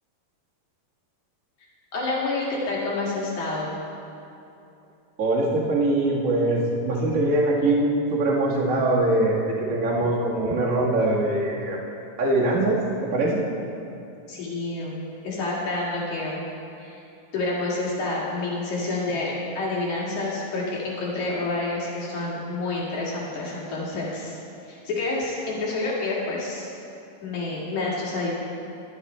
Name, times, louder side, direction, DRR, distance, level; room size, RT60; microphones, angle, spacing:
voice 1, 1.9-3.8 14.3-16.4 16.8-17.0 17.3-24.4 24.6-26.7 27.2-28.3, left 2 dB, 65° left, -5 dB, 3.2 m, -28 dB
voice 2, 5.2-11.8 12.2-13.4, right 2 dB, 35° right, -4 dB, 1.4 m, -22 dB
12.5 x 10.0 x 4.3 m, 2.7 s
omnidirectional pair, 3.7 m